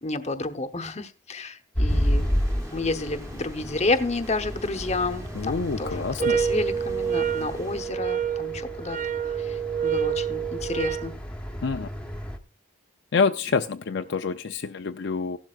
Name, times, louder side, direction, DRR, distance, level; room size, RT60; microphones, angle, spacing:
voice 1, 0.0-2.3 2.7-9.0 9.2-11.1, left 2 dB, 35° left, 0.9 m, -30 dB
sound 1, 1.7-12.4, equal, 5° left, 1.0 m, -31 dB
sound 2, 1.9-7.8, equal, 15° right, 1.0 m, -45 dB
voice 2, 5.3-6.3 11.6-11.9 13.1-15.4, left 5 dB, 60° left, 0.5 m, -27 dB
sound 3, 6.2-11.1, right 8 dB, 40° right, 0.4 m, -27 dB
15.5 x 12.0 x 2.4 m
head